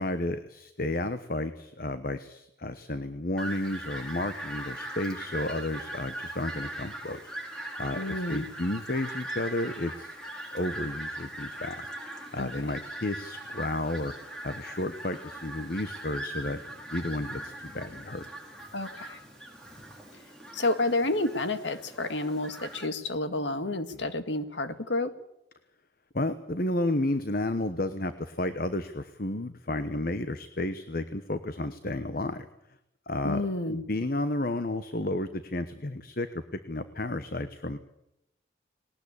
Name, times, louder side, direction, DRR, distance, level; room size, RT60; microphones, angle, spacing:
voice 1, 0.0-7.3 7.8-10.2 10.5-11.9 12.3-14.1 14.4-16.6 16.9-18.2 26.1-32.4 33.1-33.4 33.7-36.3 36.5-37.8, left 1 dB, 50° left, 11 dB, 1.2 m, -32 dB
Fowl, 3.4-22.9, right 1 dB, 5° left, 4.8 m, -40 dB
voice 2, 7.9-8.5 12.4-12.7 18.7-19.2 20.1-20.2 20.5-25.1 33.2-33.8, left 2 dB, 70° left, 10 dB, 1.9 m, -30 dB
20.0 x 19.0 x 8.5 m, 0.82 s
head